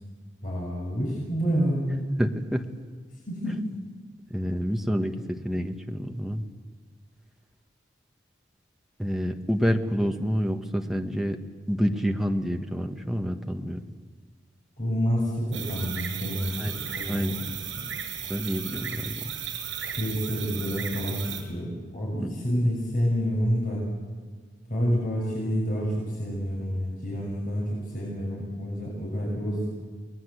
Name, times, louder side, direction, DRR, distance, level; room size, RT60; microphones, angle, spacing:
voice 1, 0.4-2.2 3.3-3.6 14.8-16.6 17.0-17.3 17.8-17.9 19.9-23.8 24.7-29.7, equal, 45° left, -3 dB, 6.5 m, -28 dB
voice 2, 2.2-2.8 3.5-3.6 4.3-6.4 9.0-11.4 11.7-13.8 16.6-16.8 17.1-17.4 18.3-19.3 22.2-22.3, equal, ahead, 4 dB, 1.4 m, -28 dB
sound 1, 15.5-21.4, right 8 dB, 80° right, 6.3 m, -35 dB
30.0 x 20.5 x 8.1 m, 1.5 s
head